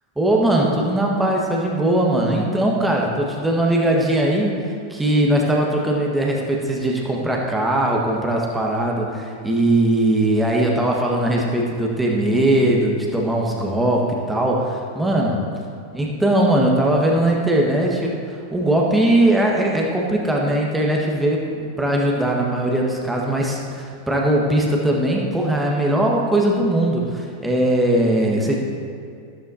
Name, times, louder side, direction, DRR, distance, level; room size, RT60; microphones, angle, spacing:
voice 1, 0.2-4.6 4.9-15.4 15.9-21.5 21.8-28.6, right 1 dB, 5° right, -1 dB, 1.5 m, -20 dB
13.5 x 12.5 x 2.8 m, 2.4 s
figure-of-eight pair, 90°, 0 cm